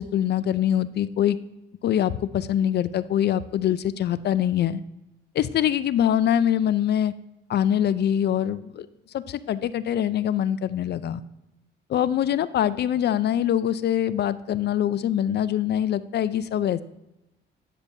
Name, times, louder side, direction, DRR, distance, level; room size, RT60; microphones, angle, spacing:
voice 1, 0.0-1.4 1.8-4.8 5.3-7.1 7.5-8.9 9.1-11.2 11.9-16.8, left 10 dB, 55° left, 16 dB, 0.4 m, -24 dB
9.9 x 6.8 x 2.7 m, 0.91 s
cardioid pair, 90°, 20 cm